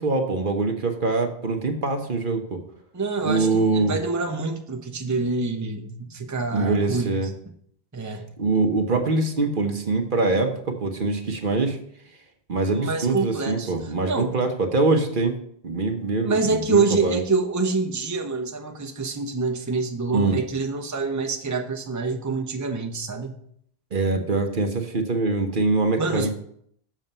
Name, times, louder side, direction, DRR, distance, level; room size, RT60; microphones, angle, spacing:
voice 1, 0.0-2.6 3.2-3.9 6.5-7.3 8.4-11.8 12.5-15.4 15.6-17.2 20.1-20.4 23.9-26.3, right 3 dB, 55° right, 5 dB, 1.1 m, -23 dB
voice 2, 2.9-7.1 7.9-8.3 12.7-14.3 16.2-23.4 26.0-26.3, right 4 dB, 20° right, 3 dB, 0.8 m, -26 dB
7.5 x 6.4 x 5.4 m, 0.67 s
omnidirectional pair, 1.1 m